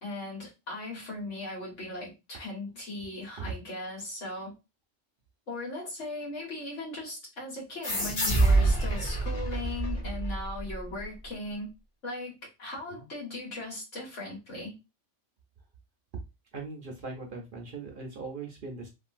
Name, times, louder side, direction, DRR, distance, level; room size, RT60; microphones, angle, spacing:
voice 1, 0.0-4.6 5.5-11.7 12.0-14.7, left 2 dB, 75° left, 1.8 m, -38 dB
sound 1, 7.8-11.0, right 2 dB, 50° left, 1.2 m, -26 dB
voice 2, 16.5-18.9, right 3 dB, 55° right, 0.7 m, -40 dB
3.1 x 2.5 x 2.5 m
omnidirectional pair, 1.3 m